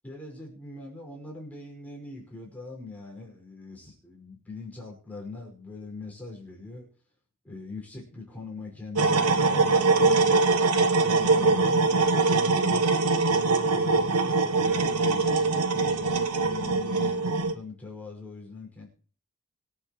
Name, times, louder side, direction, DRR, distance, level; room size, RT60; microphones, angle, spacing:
voice 1, 0.0-6.9 7.4-11.8 12.2-12.9 13.2-18.9, left 3 dB, 5° left, -3 dB, 5.5 m, -42 dB
sound 1, 9.0-17.5, right 3 dB, 90° right, 1.2 m, -23 dB
25.0 x 8.5 x 3.1 m, 0.43 s
head